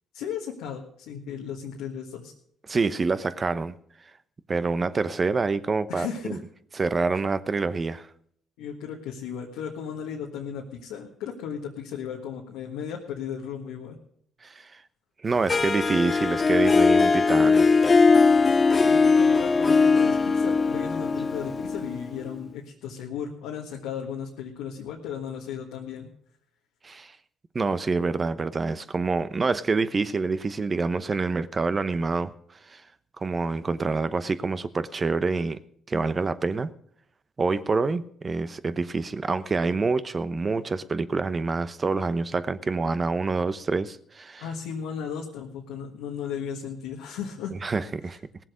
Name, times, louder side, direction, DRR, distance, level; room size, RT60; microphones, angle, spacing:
voice 1, 0.1-2.3 5.9-6.4 8.6-14.0 18.7-26.1 44.4-47.5, left 7 dB, 90° left, 1.6 m, -35 dB
voice 2, 2.7-3.8 4.5-6.4 6.8-8.1 14.4-14.7 15.2-17.7 26.8-27.1 27.5-32.3 32.7-32.8 33.2-35.6 35.9-36.7 37.4-44.4 47.6-48.2, right 4 dB, 35° right, 0.9 m, -26 dB
Harp, 15.5-22.4, left 4 dB, 35° left, 0.5 m, -20 dB
18.0 x 7.6 x 6.4 m
supercardioid pair, 65°, 0 cm